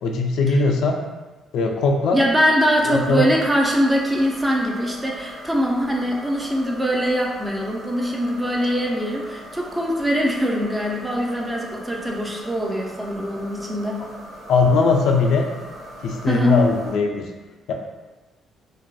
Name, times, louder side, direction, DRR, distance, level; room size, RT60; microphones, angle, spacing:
voice 1, 0.0-1.0 1.5-2.2 2.9-3.3 14.5-15.5 16.0-17.3 17.7-17.8, left 4 dB, 75° left, 2 dB, 0.3 m, -19 dB
voice 2, 2.1-14.1 16.3-16.6, equal, 15° right, -1 dB, 0.4 m, -22 dB
sound 1, 2.7-16.9, equal, 70° right, 0.6 m, -40 dB
2.6 x 2.2 x 2.3 m, 1.2 s
cardioid pair, 90°, 0 cm